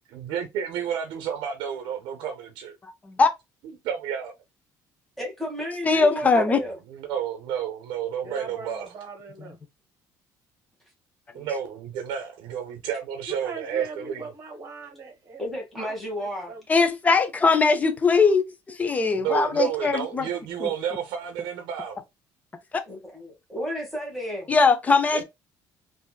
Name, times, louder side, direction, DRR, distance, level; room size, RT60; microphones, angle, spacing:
voice 1, 0.1-2.8 3.6-4.3 6.4-8.9 11.3-14.2 19.1-22.0 25.1-25.2, right 8 dB, 85° right, 0.6 m, -31 dB
voice 2, 5.2-6.8 15.4-16.5 22.9-24.5, equal, ahead, 1.4 m, -32 dB
voice 3, 5.9-6.6 16.7-19.9 20.6-20.7 24.5-25.2, left 4 dB, 20° left, 0.5 m, -20 dB
voice 4, 8.2-9.5 13.3-15.4 15.8-15.9 16.5-16.6, right 3 dB, 35° right, 1.2 m, -40 dB
3.5 x 2.6 x 2.2 m
cardioid pair, 155°, 8 cm